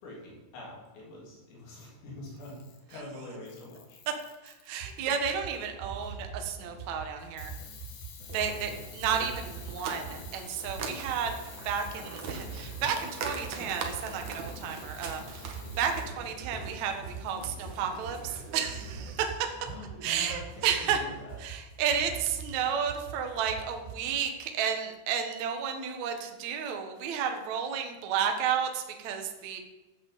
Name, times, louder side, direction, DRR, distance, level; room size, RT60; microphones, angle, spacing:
voice 1, 0.0-2.6 2.9-4.0 8.4-8.8 19.6-20.4 20.7-21.4, left 1 dB, 65° left, -3 dB, 5.3 m, -45 dB
Camera, 2.3-3.0 3.5-5.0 7.4-16.1, left 7 dB, 85° left, 4.6 m, -50 dB
voice 2, 4.4-7.5 8.3-11.3 11.6-15.5 15.8-19.5 20.0-21.0 21.4-29.6, right 7 dB, 85° right, 5 dB, 1.6 m, -32 dB
sound 1, 4.8-24.1, right 5 dB, 30° left, 5.8 m, -43 dB
sound 2, 8.3-19.2, right 4 dB, 70° right, 1.8 m, -42 dB
13.0 x 8.1 x 7.6 m, 1.1 s
omnidirectional pair, 5.7 m